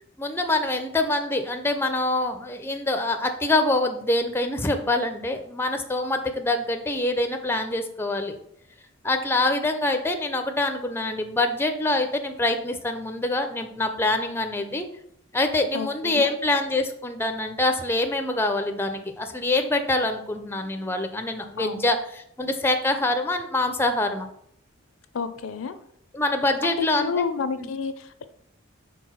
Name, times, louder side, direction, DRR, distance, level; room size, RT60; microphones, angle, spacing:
voice 1, 0.2-8.4 9.0-14.9 15.3-24.3 26.1-27.2 27.6-27.7, left 2 dB, 10° left, 6 dB, 0.4 m, -25 dB
voice 2, 15.7-16.3 21.6-21.9 25.1-25.8 26.6-28.3, left 5 dB, 65° left, 11 dB, 0.5 m, -30 dB
4.6 x 4.1 x 5.6 m, 0.71 s
head